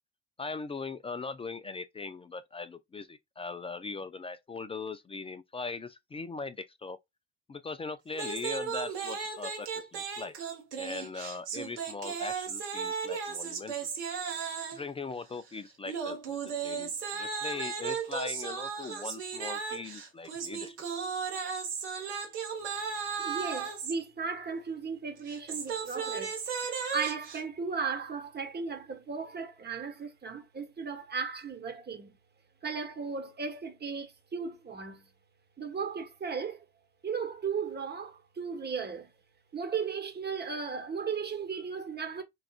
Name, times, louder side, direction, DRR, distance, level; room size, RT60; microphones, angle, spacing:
voice 1, 0.4-7.0 7.5-10.3 10.8-13.7 14.7-20.8, left 4 dB, 15° left, 0.4 m, -40 dB
sound 1, 8.1-14.9 15.9-23.9 25.2-27.4, right 6 dB, 80° right, 1.1 m, -35 dB
voice 2, 23.2-26.4 26.9-32.1 32.6-35.1 35.6-36.7 37.0-39.1 39.5-42.2, right 5 dB, 30° right, 1.1 m, -36 dB
4.7 x 2.4 x 2.3 m
hypercardioid pair, 55°, 34 cm